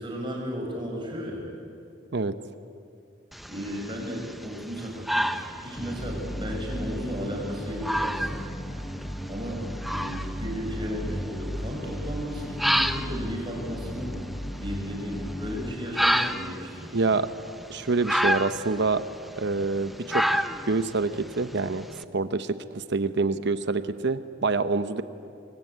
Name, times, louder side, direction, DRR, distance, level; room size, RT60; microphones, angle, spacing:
voice 1, 0.0-1.5 3.5-8.4 9.3-14.2 14.6-16.9, equal, 25° right, -1 dB, 6.3 m, -34 dB
sound 1, 3.3-22.0, equal, ahead, 0.7 m, -31 dB
sound 2, 5.7-15.7, equal, 15° left, 1.7 m, -35 dB
voice 2, 16.9-17.3 17.7-19.0 19.4-21.9 22.1-25.0, right 3 dB, 60° right, 12 dB, 0.9 m, -26 dB
25.5 x 23.5 x 9.1 m, 2.4 s
head